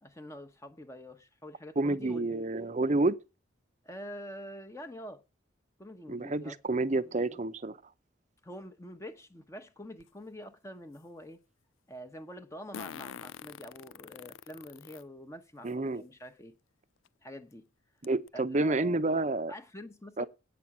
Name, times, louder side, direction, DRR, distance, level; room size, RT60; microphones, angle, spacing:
voice 1, 0.0-2.2 3.8-5.2 5.8-6.6 7.0-7.4 8.4-11.4 11.9-16.5 17.2-17.6 18.3-19.0 19.5-20.3, equal, 15° left, 0.8 m, -46 dB
voice 2, 1.8-3.2 6.1-7.8 15.6-16.0 18.0-19.5 20.2-20.3, right 2 dB, 35° right, 0.7 m, -29 dB
Fart, 10.0-10.1 12.7-15.0 15.7-15.8 17.1-17.2 17.5-17.6 18.0-18.3, left 7 dB, 85° left, 0.5 m, -45 dB
9.0 x 6.1 x 8.4 m
head